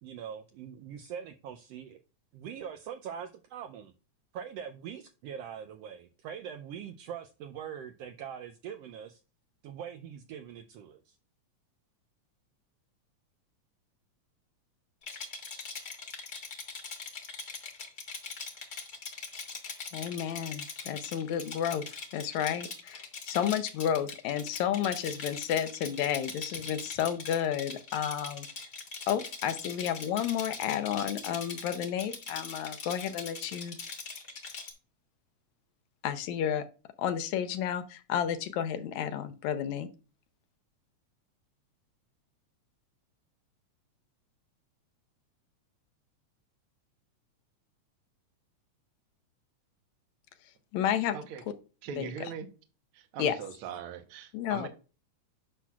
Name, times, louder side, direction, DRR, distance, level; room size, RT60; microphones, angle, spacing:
voice 1, 0.0-2.0 2.3-3.9 4.3-9.2 9.6-11.2, right 8 dB, 85° right, 8 dB, 1.4 m, -42 dB
Rattle, 15.0-34.7, left 4 dB, 45° left, 1.4 m, -41 dB
voice 2, 19.9-21.9 22.1-28.5 29.1-33.8 36.0-36.6 37.0-39.9 50.7-51.2 52.0-52.3 53.2-53.4 54.3-54.7, left 9 dB, 80° left, 10 dB, 2.0 m, -31 dB
voice 3, 51.8-52.5 52.9-54.7, right 7 dB, 60° right, 7 dB, 1.5 m, -40 dB
10.0 x 6.1 x 2.3 m, 0.34 s
omnidirectional pair, 3.4 m